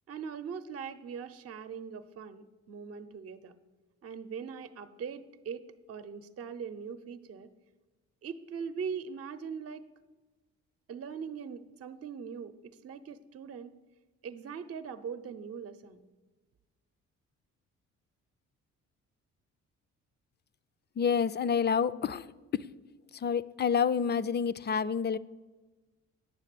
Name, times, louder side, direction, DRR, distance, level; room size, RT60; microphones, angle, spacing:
voice 1, 0.1-3.5 4.0-7.5 8.2-9.9 10.9-13.7 14.2-16.0, right 6 dB, 50° right, 11 dB, 0.8 m, -41 dB
voice 2, 21.0-22.3 22.5-22.7 23.1-25.2, left 7 dB, 35° left, 16 dB, 0.4 m, -28 dB
9.6 x 7.2 x 8.3 m, 1.3 s
cardioid pair, 90°, 30 cm